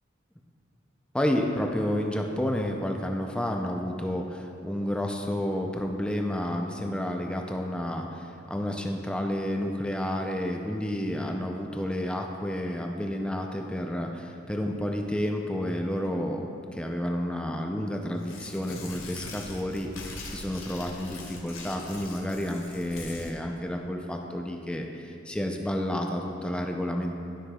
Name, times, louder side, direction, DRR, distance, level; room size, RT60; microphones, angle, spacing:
voice 1, 1.1-16.5 16.7-27.1, left 1 dB, 5° left, 2 dB, 0.5 m, -30 dB
Tearing, 18.2-23.3, left 3 dB, 80° left, 1.1 m, -42 dB
13.0 x 5.7 x 2.3 m, 2.7 s
head